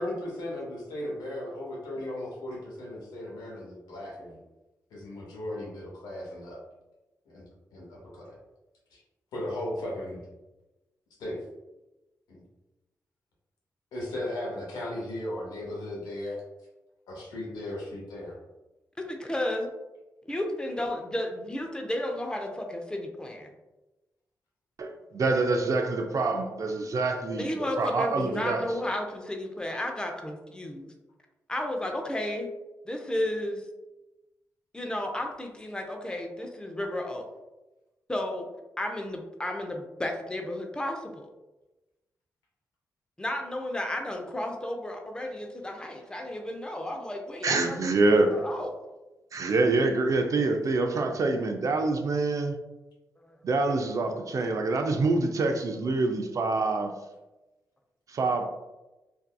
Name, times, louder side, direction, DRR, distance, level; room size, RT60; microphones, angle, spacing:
voice 1, 0.0-4.4 4.9-6.6 7.3-7.4 7.7-8.4 8.9-9.0 9.3-10.2 11.2-11.4 12.3-12.4 13.9-16.4 17.1-18.3, left 1 dB, 90° left, -4 dB, 0.8 m, -36 dB
voice 2, 19.0-19.7 20.2-23.5 27.3-30.9 31.5-32.5 32.8-33.7 34.7-37.2 38.1-38.5 38.8-41.3 43.2-47.8 48.0-48.7 53.2-53.4, left 1 dB, 10° left, 3 dB, 0.5 m, -33 dB
voice 3, 24.8-27.5 27.8-28.7 47.4-48.3 49.3-52.6 53.4-56.9 58.1-58.4, right 3 dB, 55° right, 5 dB, 0.4 m, -26 dB
2.6 x 2.3 x 2.3 m, 1.0 s
supercardioid pair, 50°, 7 cm